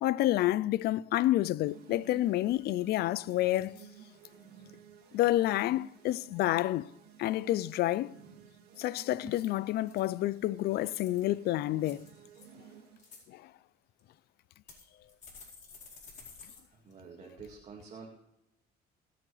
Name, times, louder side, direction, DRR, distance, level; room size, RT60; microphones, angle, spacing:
voice 1, 0.0-3.8 5.1-6.9 7.2-8.1 8.8-12.1 13.3-13.5, left 15 dB, 70° left, 0.5 m, -29 dB
sound 1, 1.6-13.2, right 7 dB, 70° right, 2.7 m, -54 dB
sound 2, 2.1-2.2 2.5-2.8 3.3-3.9 4.3-4.7 9.2-10.1 10.6-11.3 11.8-12.5 12.8-13.2 14.0-14.1 14.7-16.6 16.9-17.0 17.4-17.5, left 4 dB, 45° left, 4.4 m, -53 dB
voice 2, 16.7-18.1, right 5 dB, 40° right, 2.1 m, -48 dB
23.0 x 7.9 x 3.3 m
cardioid pair, 110°, 17 cm